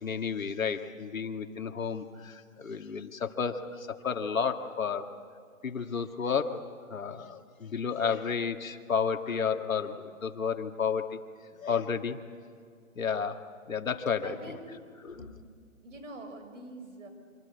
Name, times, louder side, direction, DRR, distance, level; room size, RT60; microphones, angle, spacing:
voice 1, 0.0-5.1 5.6-6.6 6.9-11.2 11.5-12.2 13.0-13.4 13.7-14.3 15.0-15.3, left 6 dB, 75° left, 6 dB, 2.0 m, -31 dB
voice 2, 14.2-15.3 15.8-17.1, right 2 dB, 65° right, 7 dB, 5.4 m, -45 dB
26.0 x 24.0 x 8.3 m, 2.2 s
hypercardioid pair, 175°, 41 cm